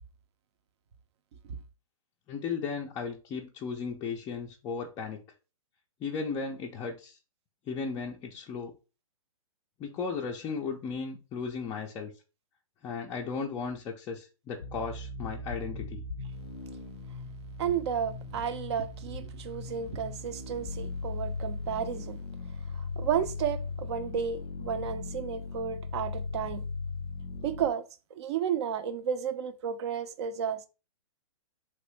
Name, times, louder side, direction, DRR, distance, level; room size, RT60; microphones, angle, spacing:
voice 1, 2.3-5.2 6.0-7.2 7.7-8.7 9.8-12.1 12.8-16.0, left 5 dB, 20° left, 0.4 m, -35 dB
sound 1, 14.6-27.7, left 3 dB, 85° left, 0.4 m, -38 dB
voice 2, 17.6-22.2 22.7-26.6 27.4-27.8 28.2-30.6, right 8 dB, 50° right, 0.5 m, -32 dB
3.0 x 2.6 x 3.1 m
hypercardioid pair, 125°, 18 cm